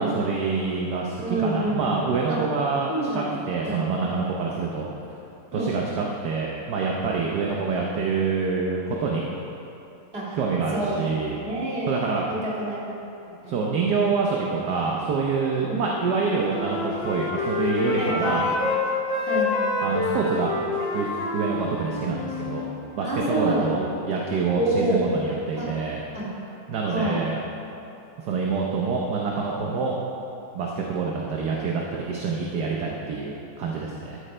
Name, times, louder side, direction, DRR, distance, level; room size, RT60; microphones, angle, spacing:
voice 1, 0.0-4.9 5.5-9.2 10.4-11.4 11.9-12.3 13.5-18.4 19.8-20.5 20.9-22.7 23.0-23.8 24.1-26.0 26.7-27.4 28.2-30.0 30.5-34.2, right 4 dB, 65° right, -1 dB, 1.4 m, -26 dB
voice 2, 1.2-1.9 2.3-2.4 2.9-3.3 3.6-3.9 5.5-5.7 10.1-10.4 10.7-10.9 11.3-11.9 12.3-13.0 13.4-13.6 15.7-15.8 18.0-18.4 19.3-19.6 23.0-23.9 24.5-25.0 25.6-25.7 26.1-26.3 26.9-27.2, right 1 dB, 30° right, -7 dB, 2.7 m, -27 dB
Wind instrument woodwind instrument, 16.1-18.8 19.1-22.7, left 3 dB, 70° left, 1.9 m, -27 dB
12.5 x 10.0 x 3.3 m, 2.9 s
omnidirectional pair, 2.0 m